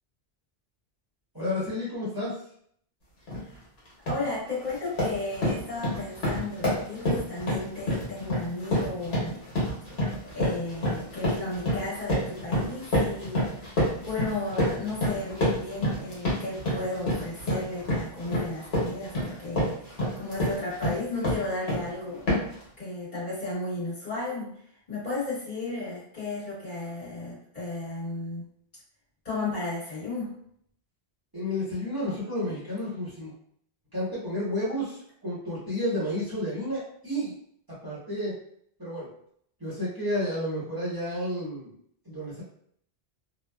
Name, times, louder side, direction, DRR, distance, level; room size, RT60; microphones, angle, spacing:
voice 1, 1.3-2.4 31.3-33.3 33.9-37.3 37.8-38.4 38.8-39.1 39.6-41.8 42.0-42.4, left 1 dB, 20° right, -10 dB, 0.9 m, -31 dB
sound 1, 3.3-3.5 3.9-4.3 4.6-21.9 22.3-22.6, left 1 dB, 80° left, 1.3 m, -28 dB
voice 2, 4.1-9.3 10.0-22.3 22.8-24.5 24.9-28.4 29.2-30.3, left 2 dB, 45° left, -10 dB, 1.5 m, -34 dB
2.8 x 2.2 x 2.2 m, 0.66 s
omnidirectional pair, 1.0 m